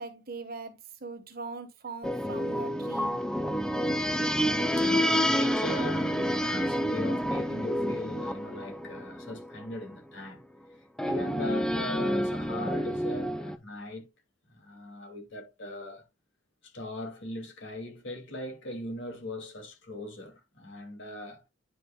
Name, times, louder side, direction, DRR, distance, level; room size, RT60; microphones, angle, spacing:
voice 1, 0.0-3.2, right 4 dB, 50° right, 1.5 m, -41 dB
sound 1, 2.0-9.9 11.0-13.6, equal, 5° left, 0.6 m, -29 dB
voice 2, 4.8-10.4 10.7-14.1 14.5-16.0 16.6-21.4, left 1 dB, 65° left, 2.5 m, -39 dB
9.7 x 5.8 x 2.3 m
head